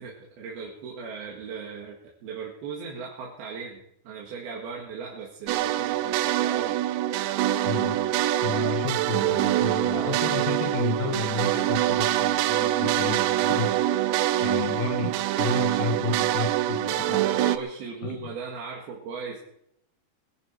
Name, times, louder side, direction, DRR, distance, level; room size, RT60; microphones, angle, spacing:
voice 1, 0.0-2.0 2.2-6.8 17.2-19.4, right 5 dB, 65° right, -3 dB, 3.6 m, -37 dB
sound 1, 5.5-17.6, right 13 dB, 85° right, 2.9 m, -25 dB
voice 2, 7.6-8.0 8.4-14.0 14.4-17.3 18.0-18.3, left 5 dB, 70° left, 5 dB, 2.3 m, -32 dB
22.0 x 11.0 x 4.6 m, 0.75 s
omnidirectional pair, 5.1 m